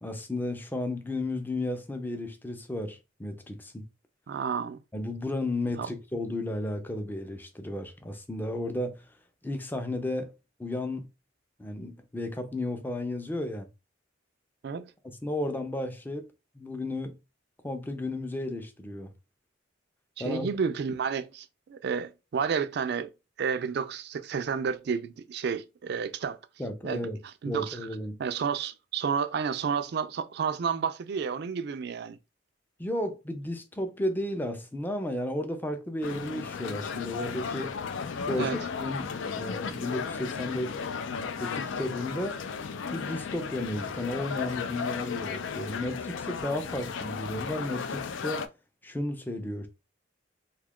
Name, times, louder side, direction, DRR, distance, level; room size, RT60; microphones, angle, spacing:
voice 1, 0.0-3.8 4.9-9.0 9.4-10.3 10.6-11.1 11.6-13.7 15.0-16.3 16.6-17.1 17.6-19.1 20.2-20.5 26.6-27.2 27.5-28.1 32.8-37.7 38.2-38.5 38.8-40.7 41.4-42.4 42.9-48.5 48.8-49.7, left 1 dB, 10° left, 0.4 m, -33 dB
voice 2, 4.3-4.8 5.8-5.9 14.6-14.9 20.2-23.1 23.4-26.4 26.8-27.1 27.4-27.8 28.2-32.2 38.3-38.6, right 6 dB, 55° right, 0.3 m, -31 dB
sound 1, 36.0-48.5, left 6 dB, 80° left, 0.4 m, -35 dB
2.9 x 2.3 x 3.5 m
head